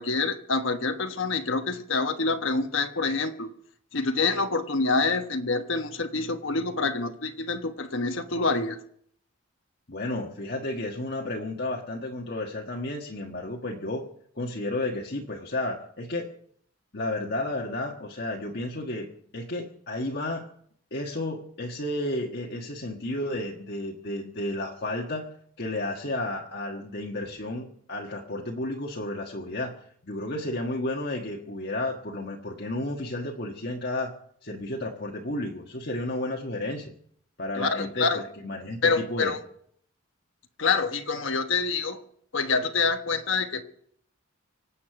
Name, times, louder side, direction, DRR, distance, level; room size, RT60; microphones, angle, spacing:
voice 1, 0.0-3.5 3.9-8.8 37.6-38.2 38.8-39.4 40.6-42.0 42.3-43.6, left 4 dB, 70° left, 7 dB, 1.2 m, -26 dB
voice 2, 9.9-14.1 14.4-16.3 16.9-20.4 20.9-25.3 25.6-29.7 30.0-34.1 34.4-36.9 37.4-39.3, left 1 dB, 50° left, -1 dB, 1.5 m, -32 dB
25.5 x 8.5 x 5.9 m, 0.65 s
head